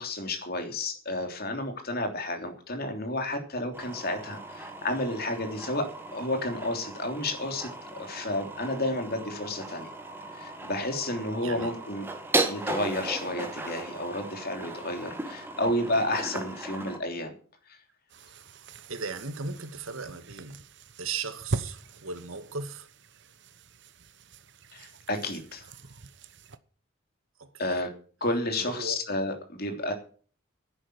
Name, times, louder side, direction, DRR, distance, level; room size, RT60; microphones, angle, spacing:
voice 1, 0.0-5.9 6.1-9.9 10.3-12.0 12.4-17.3 17.7-17.8 24.7-25.7 27.6-27.9 28.2-29.9, left 1 dB, 45° left, 3.3 m, -31 dB
sound 1, 3.7-17.0, right 2 dB, 10° right, 1.7 m, -36 dB
voice 2, 11.4-11.7 18.9-20.6 21.0-22.9 27.4-27.8 28.6-29.0, right 4 dB, 75° right, 1.8 m, -37 dB
sound 2, 18.1-26.6, right 3 dB, 55° right, 1.0 m, -42 dB
11.0 x 9.9 x 7.9 m
head